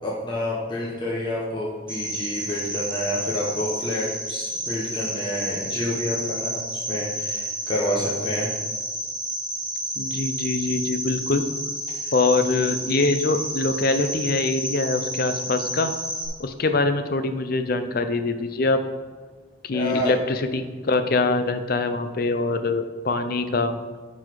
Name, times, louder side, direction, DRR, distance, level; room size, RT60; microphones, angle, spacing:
voice 1, 0.0-8.5 12.0-12.1 19.7-20.1, left 1 dB, 20° left, -5 dB, 1.2 m, -28 dB
Cricket, 1.9-16.3, equal, 5° right, 1.5 m, -30 dB
voice 2, 10.0-11.4 12.1-15.9 16.4-18.8 19.6-23.8, left 3 dB, 45° left, 9 dB, 0.5 m, -24 dB
12.0 x 4.2 x 4.7 m, 1.4 s
head